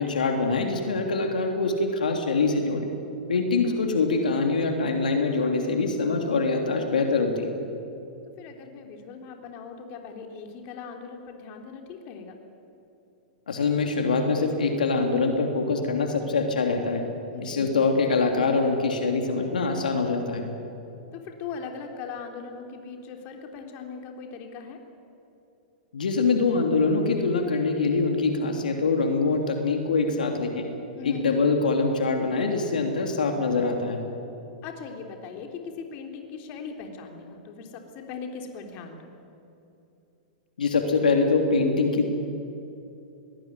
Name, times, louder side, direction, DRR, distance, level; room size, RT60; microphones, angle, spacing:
voice 1, 0.0-2.9 3.3-7.5 13.5-17.0 17.4-20.4 25.9-30.7 31.0-34.0 40.6-42.1, left 4 dB, 80° left, 4 dB, 3.1 m, -24 dB
voice 2, 8.4-12.3 17.3-17.8 21.1-24.8 31.0-31.4 34.6-39.1, left 5 dB, 45° left, 3 dB, 3.6 m, -39 dB
22.5 x 19.5 x 9.7 m, 2.8 s
hypercardioid pair, 110°, 4 cm